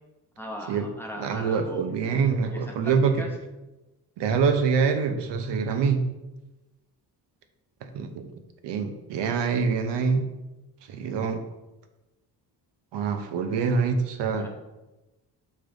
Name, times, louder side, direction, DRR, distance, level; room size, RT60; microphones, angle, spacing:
voice 1, 0.4-1.9 2.5-3.3 14.3-14.5, left 1 dB, 5° left, 0 dB, 0.9 m, -38 dB
voice 2, 1.2-3.1 4.2-6.0 7.9-8.3 8.6-10.2 10.9-11.4 12.9-14.5, right 5 dB, 90° right, 7 dB, 0.8 m, -25 dB
5.4 x 5.1 x 3.9 m, 1.0 s
cardioid pair, 155°, 41 cm